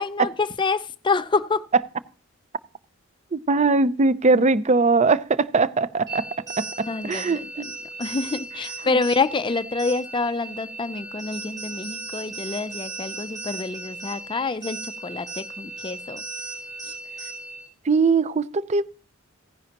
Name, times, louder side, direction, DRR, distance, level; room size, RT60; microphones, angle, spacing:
voice 1, 0.0-1.6 6.8-7.5 8.0-16.2 16.8-16.9, left 4 dB, 25° left, 0.4 m, -27 dB
voice 2, 3.3-6.3 6.6-7.7 8.9-9.0 17.9-18.8, right 3 dB, 35° right, 0.5 m, -21 dB
sound 1, 6.1-17.7, right 3 dB, 20° right, 3.9 m, -36 dB
15.5 x 10.5 x 2.9 m
head